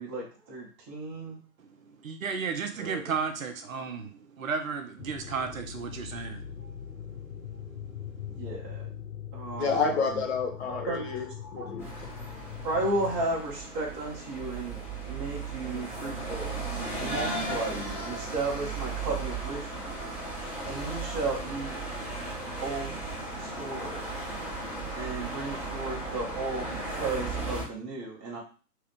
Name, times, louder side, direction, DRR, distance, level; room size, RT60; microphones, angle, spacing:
voice 1, 0.0-1.4 2.8-3.1 8.3-8.9 9.3-10.2 10.9-11.1 11.8-11.9 12.6-14.8 15.0-16.5 17.0-20.1 20.6-21.8 22.6-23.0 23.4-24.1 24.9-28.4, right 2 dB, 15° right, -4 dB, 0.7 m, -34 dB
voice 2, 2.0-6.4, right 5 dB, 55° right, 5 dB, 0.7 m, -33 dB
sound 1, 5.0-13.2, left 8 dB, 75° left, 1.5 m, -41 dB
voice 3, 9.6-11.8, left 5 dB, 40° left, 1 dB, 1.0 m, -29 dB
sound 2, 11.8-27.6, right 3 dB, 5° left, 1.1 m, -36 dB
3.6 x 2.9 x 3.4 m, 0.37 s
figure-of-eight pair, 125°, 47 cm